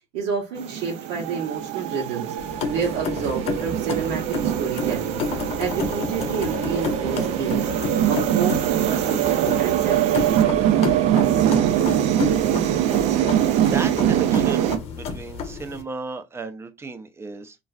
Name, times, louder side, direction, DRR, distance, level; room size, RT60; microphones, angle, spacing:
voice 1, 0.1-2.3 2.7-5.2 5.6-7.7 8.0-10.5, right 6 dB, 85° right, 1.0 m, -29 dB
sound 1, 0.6-14.8, right 11 dB, 70° right, 0.5 m, -22 dB
sound 2, 2.4-15.8, left 5 dB, 55° left, 0.7 m, -31 dB
voice 2, 13.5-17.6, right 3 dB, 20° right, 0.6 m, -35 dB
3.0 x 2.5 x 2.3 m
cardioid pair, 115°, 12 cm